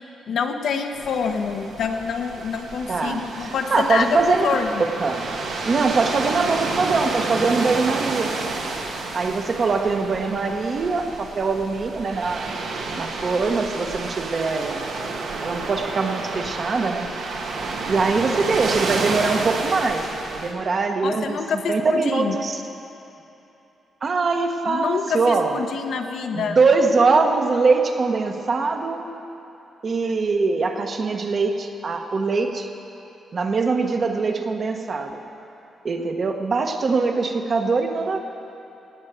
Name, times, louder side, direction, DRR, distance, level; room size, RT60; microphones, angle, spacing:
voice 1, 0.3-4.2 4.4-4.7 21.0-22.4 24.7-26.6, left 6 dB, 70° left, 5 dB, 1.0 m, -26 dB
sound 1, 0.9-20.5, right 3 dB, 80° right, 1.6 m, -30 dB
voice 2, 2.9-4.4 4.8-5.3 5.6-8.3 9.1-12.5 13.0-14.9 15.4-17.1 17.9-20.1 20.3-22.6 24.0-25.5 26.3-29.1 29.8-32.7 33.3-35.2 35.8-38.2, right 4 dB, 40° right, 4 dB, 1.1 m, -22 dB
17.0 x 6.4 x 9.3 m, 2.9 s
cardioid pair, 130°, 0 cm